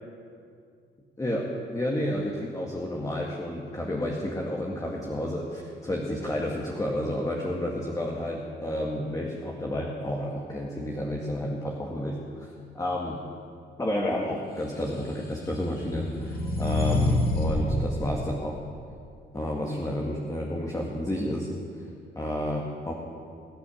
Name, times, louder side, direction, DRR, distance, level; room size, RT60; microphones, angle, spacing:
voice 1, 1.2-13.2 13.8-18.6 19.3-21.5 21.8-21.9 22.1-22.9, left 1 dB, 15° left, -1 dB, 2.0 m, -31 dB
sound 1, 14.8-17.7, left 2 dB, 55° left, 4.7 m, -28 dB
22.0 x 8.6 x 7.2 m, 2.3 s
cardioid pair, 90°, 20 cm